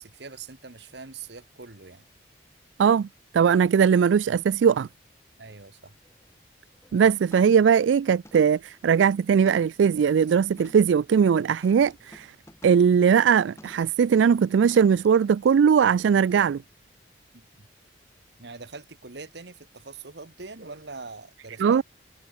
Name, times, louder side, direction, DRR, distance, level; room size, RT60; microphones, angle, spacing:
voice 1, 0.0-2.0 5.4-6.0 17.3-17.7 18.4-21.8, right 4 dB, 65° right, 1.4 m, -43 dB
voice 2, 3.3-4.9 6.9-12.3 12.6-16.6 21.6-21.8, right 7 dB, 85° right, 0.3 m, -20 dB
sound 1, 6.0-6.3 6.7-7.0 7.3-7.7 8.3-9.9 10.6-10.9 11.6-12.9 13.6-14.0 14.6-15.1 15.5-15.6, left 1 dB, 15° left, 2.5 m, -52 dB
head